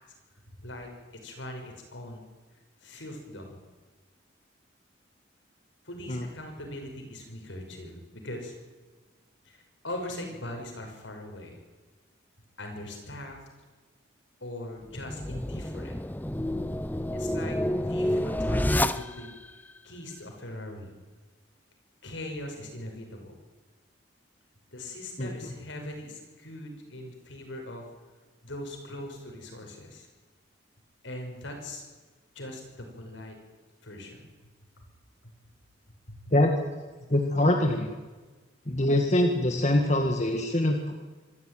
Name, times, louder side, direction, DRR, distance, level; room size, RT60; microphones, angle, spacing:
voice 1, 0.6-2.2 2.8-3.6 5.8-8.5 9.4-11.6 12.6-13.4 14.4-16.0 17.1-19.3 19.8-20.9 22.0-23.3 24.7-27.8 28.4-30.1 31.0-31.8 32.3-33.4 33.8-34.3 34.8-34.9 35.2-35.3 36.1-36.2, left 1 dB, 70° left, 3 dB, 6.0 m, -40 dB
sound 1, 14.9-19.5, left 1 dB, 10° left, 0.6 m, -29 dB
voice 2, 25.2-25.5 36.3-36.5 37.1-37.9 38.7-40.9, left 1 dB, 35° left, 3 dB, 1.8 m, -24 dB
25.5 x 14.0 x 9.3 m, 1.3 s
head